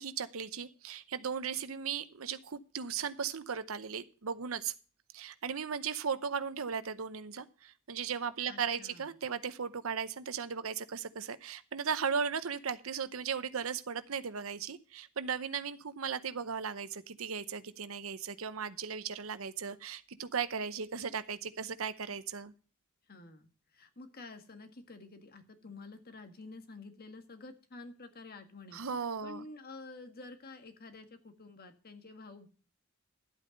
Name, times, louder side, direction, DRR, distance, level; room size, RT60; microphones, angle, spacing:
voice 1, 0.0-4.7 5.1-22.5 28.7-29.4, right 6 dB, 75° right, 13 dB, 0.8 m, -37 dB
voice 2, 8.5-9.1 23.1-28.8 29.2-32.5, left 3 dB, 45° left, 7 dB, 1.7 m, -50 dB
12.0 x 8.5 x 5.2 m, 0.37 s
head